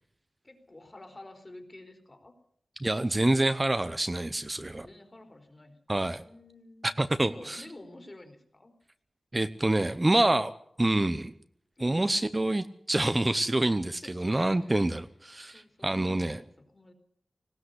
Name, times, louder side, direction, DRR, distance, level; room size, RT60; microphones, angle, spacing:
voice 1, 0.4-2.3 4.8-5.8 6.2-6.9 7.2-8.7 11.8-12.1 14.0-14.9 15.5-16.9, left 1 dB, 30° left, 6 dB, 4.1 m, -49 dB
voice 2, 2.8-4.9 5.9-6.2 6.8-7.6 9.3-10.5 10.8-11.3 11.8-16.4, right 2 dB, 25° right, 11 dB, 0.8 m, -27 dB
19.5 x 19.0 x 8.1 m, 0.69 s
wide cardioid pair, 95°, 0 cm